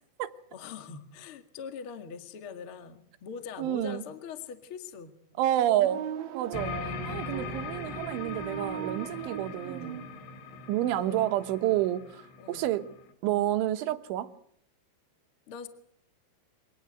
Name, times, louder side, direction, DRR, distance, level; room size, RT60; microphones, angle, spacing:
voice 1, 0.5-5.1 10.9-11.3 12.4-12.7 15.5-15.7, left 6 dB, 50° left, 8 dB, 1.6 m, -42 dB
voice 2, 3.6-4.0 5.4-6.1 6.4-10.0 10.7-12.9 13.2-14.3, right 13 dB, 80° right, 11 dB, 3.6 m, -29 dB
sound 1, 5.7-10.1, right 9 dB, 55° right, 3.0 m, -39 dB
sound 2, 6.4-11.6, right 2 dB, 35° right, 7.7 m, -60 dB
sound 3, 6.5-13.1, left 4 dB, 80° left, 4.7 m, -40 dB
25.5 x 18.5 x 8.0 m, 0.67 s
omnidirectional pair, 5.6 m